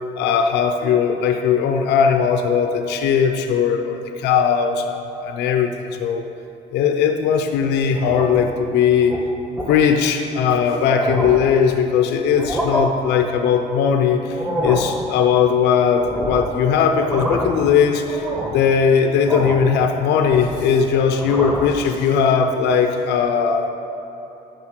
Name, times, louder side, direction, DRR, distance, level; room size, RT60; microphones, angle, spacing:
voice 1, 0.2-5.7 6.0-6.2 6.7-9.1 9.7-23.7, left 6 dB, 85° left, 5 dB, 0.8 m, -18 dB
sound 1, 7.9-8.5 9.0-9.2 9.6-9.8 10.4-10.5 10.8-11.5 12.3-12.8 14.3-14.9 16.0-16.6 16.9-17.6 18.1-18.6 19.3-19.7 20.1-20.8 21.1-21.8, equal, 10° right, 1.5 m, -27 dB
10.5 x 5.9 x 6.6 m, 3.0 s
cardioid pair, 110°, 17 cm